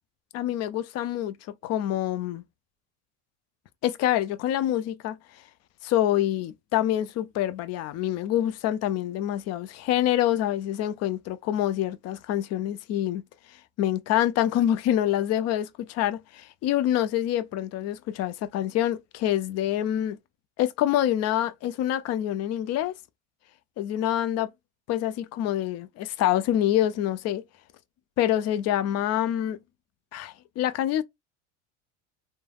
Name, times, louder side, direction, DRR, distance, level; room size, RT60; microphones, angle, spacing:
voice 1, 0.3-1.4 1.6-2.4 3.8-5.2 5.8-13.2 13.8-20.2 20.6-22.9 23.8-24.5 24.9-27.4 28.2-29.6 30.1-31.0, left 12 dB, 45° left, 0.5 m, -26 dB
3.1 x 2.2 x 2.3 m
hypercardioid pair, 85°, 36 cm